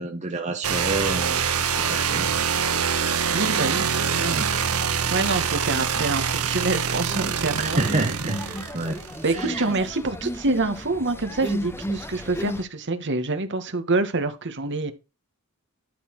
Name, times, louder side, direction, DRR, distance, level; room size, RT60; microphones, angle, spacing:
voice 1, 0.0-2.3 4.3-4.5 7.6-8.4 8.7-9.0 9.3-9.6, right 2 dB, 30° right, 1.2 m, -29 dB
sound 1, 0.6-9.4, right 7 dB, 75° right, 1.6 m, -25 dB
voice 2, 3.3-3.9 4.2-4.4 5.1-8.1 8.5-8.6 9.2-14.9, right 3 dB, 55° right, 1.6 m, -26 dB
sound 2, 5.7-6.3 6.6-12.6, left 1 dB, 10° left, 0.9 m, -34 dB
12.5 x 4.2 x 6.0 m
head